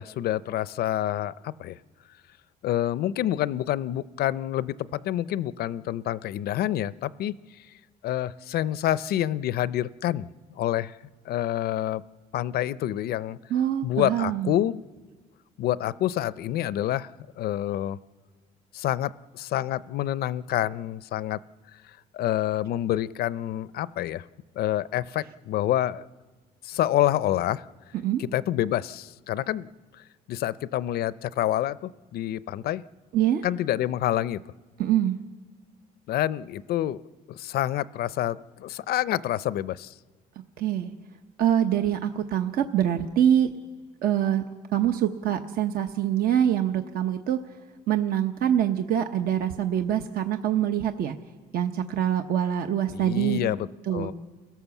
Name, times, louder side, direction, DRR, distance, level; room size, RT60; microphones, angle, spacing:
voice 1, 0.0-1.8 2.6-7.4 8.0-10.9 11.3-12.0 12.3-13.4 13.8-14.8 15.6-17.1 17.4-18.0 18.7-21.4 22.1-24.2 24.6-26.1 26.6-27.6 28.2-29.7 30.3-32.8 33.4-34.4 36.1-37.0 37.3-39.9 52.9-54.1, left 13 dB, 65° left, 18 dB, 0.6 m, -27 dB
voice 2, 13.5-14.5 28.0-28.2 33.1-33.4 34.8-35.2 40.6-40.9 41.4-43.5 44.0-44.4 44.7-47.4 47.9-51.2 51.5-53.4 53.9-54.1, right 10 dB, 60° right, 6 dB, 1.0 m, -24 dB
29.5 x 17.0 x 7.2 m, 1.4 s
cardioid pair, 110°, 17 cm